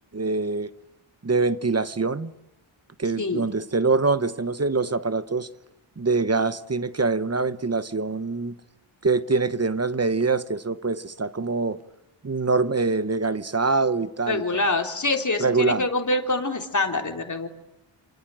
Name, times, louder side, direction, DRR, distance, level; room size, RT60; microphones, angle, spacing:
voice 1, 0.1-0.7 1.2-2.3 3.0-5.5 6.0-8.6 9.0-11.8 12.2-14.7 15.4-15.9, right 4 dB, 30° right, 1.1 m, -24 dB
voice 2, 3.2-3.5 14.3-17.5, left 2 dB, 35° left, 3.5 m, -25 dB
28.5 x 27.0 x 7.7 m
wide cardioid pair, 120°, 49 cm